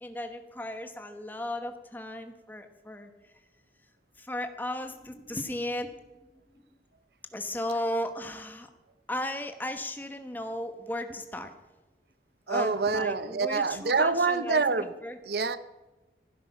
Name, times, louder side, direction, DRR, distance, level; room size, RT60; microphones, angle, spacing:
voice 1, 0.0-3.1 4.2-5.9 7.3-8.7 9.1-11.5 12.5-15.2, left 1 dB, 10° left, 6 dB, 1.1 m, -35 dB
voice 2, 12.5-14.9 15.3-15.6, right 4 dB, 65° right, 13 dB, 0.7 m, -26 dB
15.5 x 12.5 x 5.9 m, 1.1 s
head